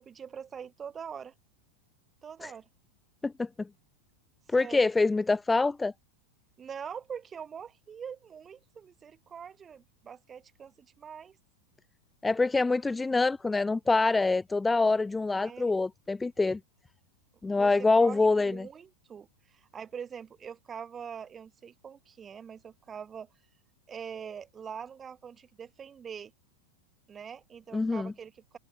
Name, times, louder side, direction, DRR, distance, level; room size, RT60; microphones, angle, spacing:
voice 1, 0.0-1.3 2.2-2.7 4.6-4.8 6.6-11.4 15.4-15.8 17.5-17.7 18.0-23.3 23.9-26.3 27.1-28.6, right 7 dB, 20° right, 2.7 m, -43 dB
voice 2, 3.2-3.7 4.5-5.9 12.2-16.6 17.4-18.7 27.7-28.1, left 3 dB, 10° left, 0.3 m, -25 dB
figure-of-eight pair, 90°, 0 cm